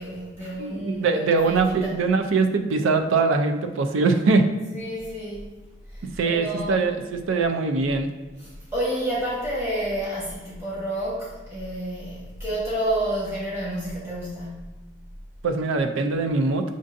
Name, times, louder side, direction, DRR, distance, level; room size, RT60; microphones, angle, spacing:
voice 1, 0.0-1.9 4.7-5.5 5.9-6.9 8.4-14.8, right 1 dB, 15° right, -9 dB, 1.1 m, -30 dB
voice 2, 0.6-4.5 6.2-8.1 15.4-16.6, right 4 dB, 90° right, 6 dB, 0.4 m, -22 dB
6.2 x 2.6 x 2.5 m, 1.2 s
head